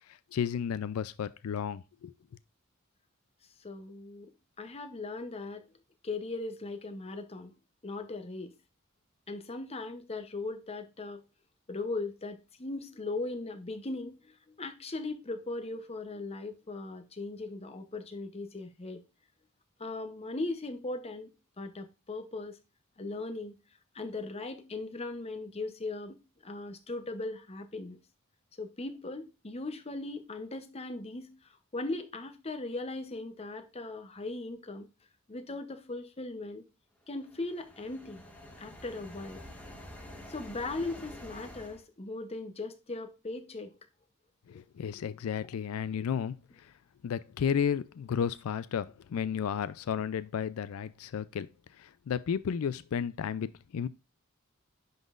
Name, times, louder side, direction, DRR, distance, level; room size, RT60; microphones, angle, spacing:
voice 1, 0.3-2.1 44.5-46.4 47.0-51.5 51.8-53.9, left 7 dB, 85° left, 0.4 m, -33 dB
voice 2, 3.6-4.3 4.6-5.7 6.0-7.5 7.8-8.5 9.3-11.2 11.7-19.0 19.8-22.6 23.0-23.6 23.9-28.0 28.6-31.3 31.7-34.9 35.3-36.6 37.1-38.2 38.6-39.4 40.3-43.8 44.5-44.6, left 2 dB, 30° left, 0.8 m, -38 dB
sound 1, 37.1-41.8, left 1 dB, 5° left, 1.1 m, -48 dB
10.5 x 4.0 x 2.4 m
head